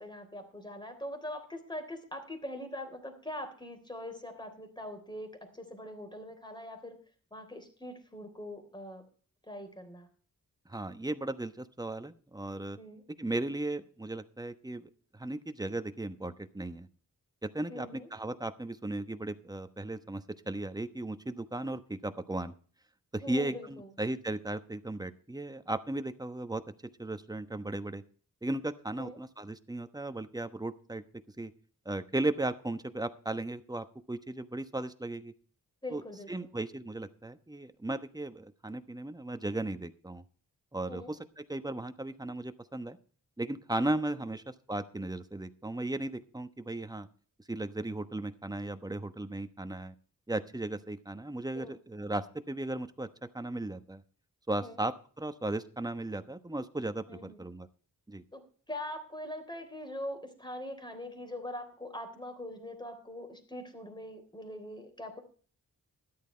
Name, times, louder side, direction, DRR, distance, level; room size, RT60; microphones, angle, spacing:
voice 1, 0.0-7.0 7.3-9.0 9.5-10.1 12.8-13.0 17.7-18.1 23.2-23.9 29.0-29.2 35.8-36.5 40.9-41.1 44.1-44.2 51.6-51.7 54.6-54.8 57.1-57.4 58.3-58.4 58.7-65.2, left 1 dB, 15° left, 6 dB, 3.5 m, -42 dB
voice 2, 10.7-12.8 13.2-16.9 17.4-22.5 23.1-26.6 27.0-28.0 28.4-31.0 31.4-31.5 31.8-35.3 35.9-36.0 36.3-40.2 40.7-43.0 43.4-47.1 47.5-49.9 50.3-53.1 53.3-54.0 54.5-57.7 58.1-58.2, right 2 dB, 10° right, 10 dB, 1.1 m, -36 dB
13.0 x 11.0 x 4.4 m, 0.42 s
wide cardioid pair, 85°, 34 cm